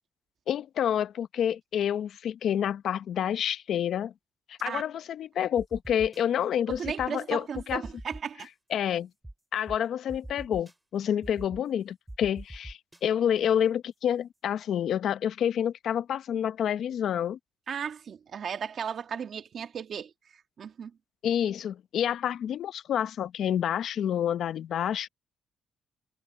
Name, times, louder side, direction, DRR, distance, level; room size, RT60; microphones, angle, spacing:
voice 1, 0.5-4.1 4.5-7.8 8.7-9.1 9.5-17.4 21.2-25.1, left 9 dB, 70° left, 0.8 m, -28 dB
sound 1, 5.6-6.2 6.7-7.1 7.5-8.5 9.2-9.3 9.7-9.8 10.1-10.7 11.2-11.6 12.1-13.0, right 1 dB, 10° right, 3.8 m, -42 dB
voice 2, 6.7-8.5 17.7-20.9, right 7 dB, 55° right, 1.9 m, -35 dB
cardioid pair, 90°, 0 cm